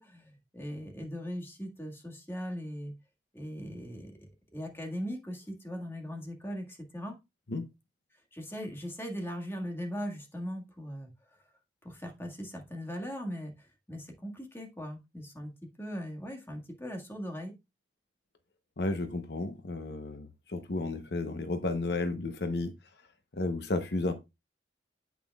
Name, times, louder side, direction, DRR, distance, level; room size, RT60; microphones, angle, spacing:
voice 1, 0.0-2.9 3.3-7.1 8.3-11.1 11.8-17.5, equal, 15° left, 1.7 m, -39 dB
voice 2, 18.8-22.7 23.3-24.1, left 2 dB, 65° left, 0.9 m, -32 dB
9.2 x 8.3 x 2.3 m
head